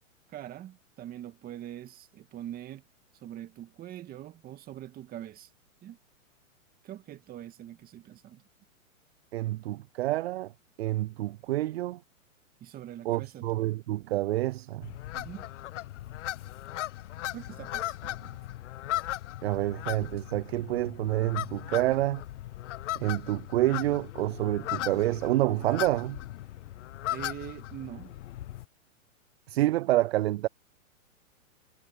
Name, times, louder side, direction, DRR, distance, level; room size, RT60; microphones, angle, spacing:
voice 1, 0.3-2.8 3.2-5.5 5.8-6.0 6.8-8.4 12.6-13.7 15.1-15.5 17.3-18.4 27.1-28.2, right 12 dB, 20° right, 2.1 m, -43 dB
voice 2, 9.3-10.5 10.8-12.0 13.1-14.9 19.4-22.2 23.0-26.2 29.5-30.5, right 16 dB, 50° right, 0.6 m, -28 dB
sound 1, 14.8-28.6, left 14 dB, 60° left, 0.7 m, -38 dB
hypercardioid pair, 140°, 41 cm